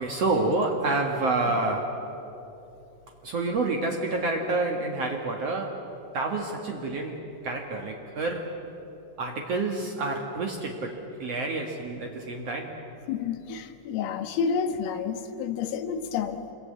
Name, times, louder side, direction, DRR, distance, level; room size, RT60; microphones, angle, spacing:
voice 1, 0.0-2.0 3.2-5.8 6.1-8.5 9.2-12.8, right 2 dB, 80° right, 1 dB, 1.4 m, -28 dB
voice 2, 13.1-16.4, left 6 dB, 80° left, 6 dB, 4.0 m, -29 dB
27.5 x 23.5 x 8.7 m, 3.0 s
omnidirectional pair, 5.7 m